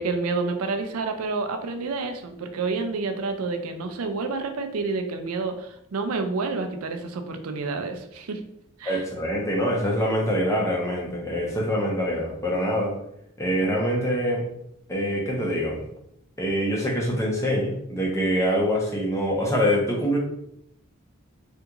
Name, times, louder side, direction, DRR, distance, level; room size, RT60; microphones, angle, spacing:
voice 1, 0.0-8.4 8.8-9.0, right 3 dB, 90° right, 6 dB, 0.5 m, -29 dB
voice 2, 8.8-13.0 13.4-14.4 14.9-15.8 16.4-20.2, equal, 15° left, -3 dB, 0.6 m, -24 dB
3.5 x 2.4 x 2.9 m, 0.75 s
head